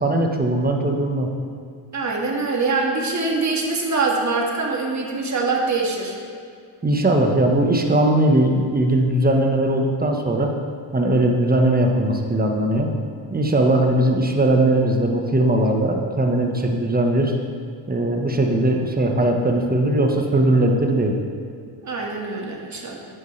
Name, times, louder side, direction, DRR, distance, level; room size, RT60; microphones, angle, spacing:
voice 1, 0.0-1.3 6.8-10.5 10.9-12.9 13.3-17.3 17.9-21.2, right 1 dB, 20° right, 2 dB, 1.4 m, -19 dB
voice 2, 1.9-6.1 21.8-23.1, right 3 dB, 35° right, -1 dB, 2.0 m, -24 dB
11.0 x 8.5 x 3.4 m, 2.3 s
supercardioid pair, 70°, 49 cm